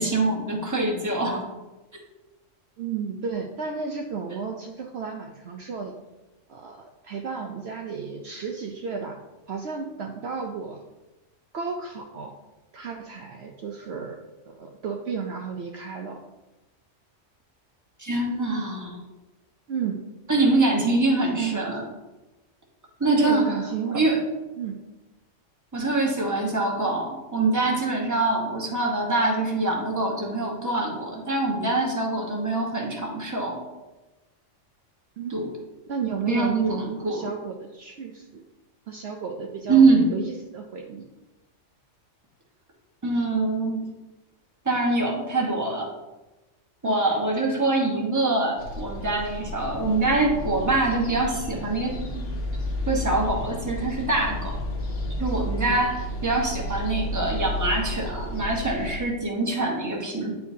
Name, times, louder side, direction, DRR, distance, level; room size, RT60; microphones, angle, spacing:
voice 1, 0.0-1.4 18.0-19.0 20.3-21.8 23.0-23.5 23.9-24.2 25.7-33.7 35.3-35.5 36.3-37.3 39.7-40.1 43.0-43.9 44.6-45.9 46.8-52.2 52.9-54.6 55.2-56.0 56.2-60.3, right 2 dB, 15° right, -1 dB, 1.1 m, -24 dB
voice 2, 2.8-5.9 6.5-9.2 9.5-10.8 11.5-12.3 12.7-14.2 14.5-16.2 19.7-20.0 21.2-21.9 23.2-24.1 24.6-24.8 35.2-35.3 35.9-38.4 38.9-39.8 40.1-41.0 46.8-47.0 55.6-55.8, right 6 dB, 65° right, 2 dB, 0.8 m, -33 dB
sound 1, 48.6-59.0, left 1 dB, 70° left, 1.3 m, -32 dB
9.4 x 4.5 x 2.7 m, 1.1 s
omnidirectional pair, 1.3 m